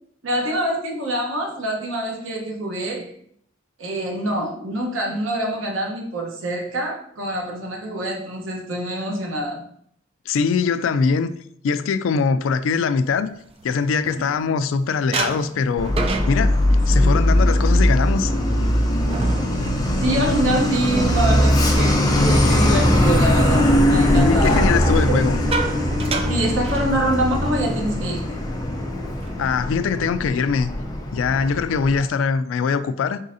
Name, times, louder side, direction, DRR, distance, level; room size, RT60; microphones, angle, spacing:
voice 1, 0.2-3.1 3.8-9.6 14.5-14.6 16.9-17.1 20.0-24.6 25.0-25.1 26.3-28.4, right 1 dB, 85° right, 0.9 m, -25 dB
voice 2, 10.3-11.3 11.6-13.3 13.6-15.9 16.3-16.6 16.9-18.3 24.1-25.4 29.4-30.7 31.1-33.2, left 5 dB, 85° left, 0.3 m, -22 dB
sound 1, 13.3-14.7 15.1-23.0 23.3-23.6 24.8-27.4 27.7-27.9 28.2-28.5 29.0-29.7, right 3 dB, 30° right, 0.3 m, -32 dB
Truck, 15.8-32.0, left 1 dB, 20° left, 0.5 m, -20 dB
Bass guitar, 18.4-24.7, right 3 dB, 10° right, 1.5 m, -44 dB
4.0 x 3.8 x 2.6 m
head